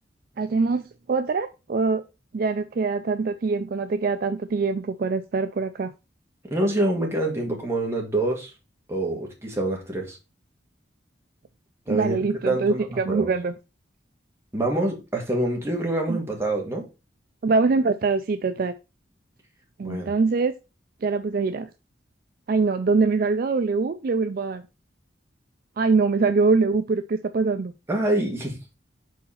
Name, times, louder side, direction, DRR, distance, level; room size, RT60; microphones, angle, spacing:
voice 1, 0.4-2.0 2.3-5.9 11.9-13.5 16.1-16.2 17.4-18.7 19.8-20.5 21.0-21.7 22.5-24.6 25.8-27.7, right 4 dB, 50° right, 0.4 m, -23 dB
voice 2, 6.5-8.5 8.9-10.2 11.9-13.3 14.5-16.8 19.8-20.1 27.9-28.6, right 1 dB, 15° right, 1.7 m, -26 dB
4.6 x 4.1 x 5.6 m
head